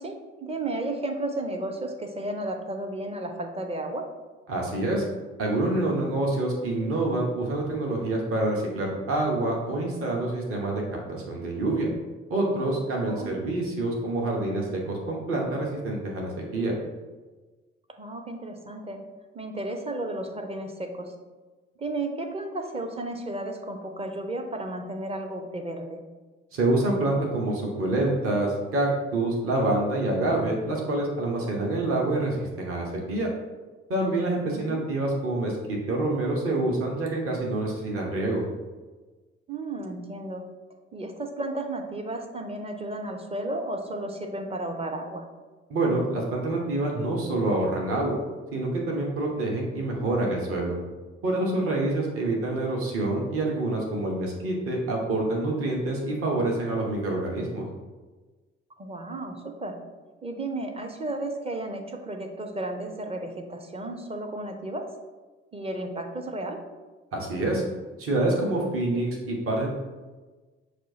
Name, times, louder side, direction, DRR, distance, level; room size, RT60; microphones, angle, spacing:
voice 1, 0.0-4.1 13.1-13.4 18.0-19.0 19.3-21.1 21.8-26.0 34.5-34.9 39.5-40.5 40.9-45.3 58.8-59.8 60.2-64.9 65.5-66.6, right 2 dB, 20° right, 4 dB, 0.5 m, -33 dB
voice 2, 4.5-5.0 5.4-10.8 11.1-11.9 12.3-16.7 26.5-33.3 33.9-38.4 45.7-48.2 48.5-50.8 51.2-57.6 67.1-67.6 68.0-69.7, right 2 dB, 45° right, -1 dB, 0.9 m, -27 dB
6.0 x 2.5 x 2.7 m, 1.3 s
figure-of-eight pair, 45°, 32 cm